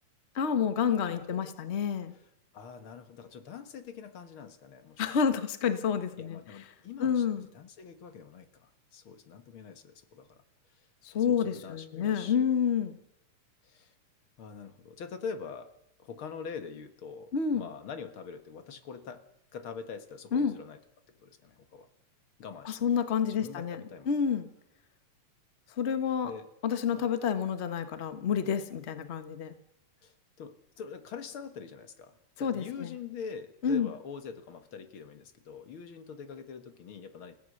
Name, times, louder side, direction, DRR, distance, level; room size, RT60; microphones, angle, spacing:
voice 1, 0.3-2.1 5.0-6.4 7.0-7.5 11.0-12.9 17.3-17.7 20.3-20.6 22.6-23.8 24.1-24.5 25.8-26.3 26.6-29.5 32.4-32.9 33.6-33.9, left 7 dB, 85° left, 9 dB, 0.5 m, -29 dB
voice 2, 1.1-1.5 2.5-5.2 6.2-10.4 11.3-12.4 13.6-13.9 14.4-15.7 16.0-19.2 19.5-20.8 21.2-21.9 22.4-22.9 23.3-24.1 26.2-26.5 26.9-27.1 30.0-37.3, left 6 dB, 50° left, 8 dB, 2.0 m, -44 dB
29.5 x 16.0 x 6.5 m, 0.81 s
omnidirectional pair, 3.4 m